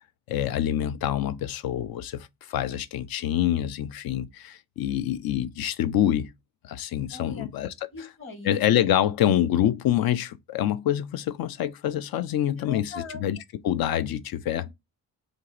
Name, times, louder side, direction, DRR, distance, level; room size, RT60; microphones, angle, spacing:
voice 1, 0.3-6.3 6.6-7.7 8.5-12.9 13.2-13.4 13.6-14.6, left 11 dB, 45° left, 0.6 m, -26 dB
voice 2, 7.1-7.5 7.9-8.6 12.6-13.2 14.5-14.7, left 3 dB, 25° left, 1.6 m, -40 dB
2.6 x 2.5 x 3.9 m
hypercardioid pair, 40°, 50 cm